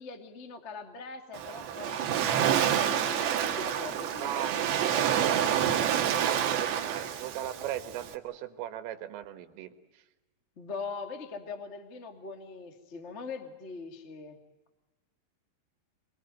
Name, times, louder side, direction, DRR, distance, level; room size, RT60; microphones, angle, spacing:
voice 1, 0.0-5.5 10.6-14.4, left 4 dB, 45° left, 6 dB, 0.9 m, -42 dB
Waves surf, 1.3-8.1, right 9 dB, 65° right, 3.6 m, -28 dB
voice 2, 4.2-4.6 6.2-9.7, right 12 dB, 85° right, 9 dB, 4.2 m, -38 dB
28.0 x 22.5 x 9.3 m, 1.1 s
omnidirectional pair, 5.6 m